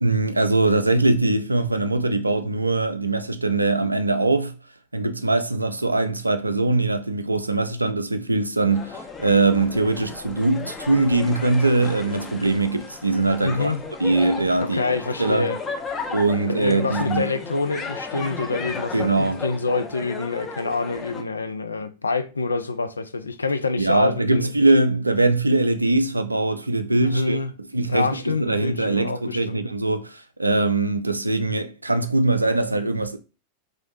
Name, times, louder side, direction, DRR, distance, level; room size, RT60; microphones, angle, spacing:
voice 1, 0.0-4.6 4.9-13.7 14.0-14.8 15.2-15.5 16.1-17.3 18.9-19.4 23.8-27.4 27.7-33.2, right 2 dB, 85° right, 0.3 m, -22 dB
sound 1, 8.7-21.2, left 4 dB, 20° left, 0.6 m, -34 dB
voice 2, 13.4-13.8 14.6-15.6 16.5-24.5 27.0-27.5 27.8-29.6, left 3 dB, 75° left, 0.3 m, -26 dB
3.2 x 2.5 x 3.8 m
figure-of-eight pair, 90°, 0 cm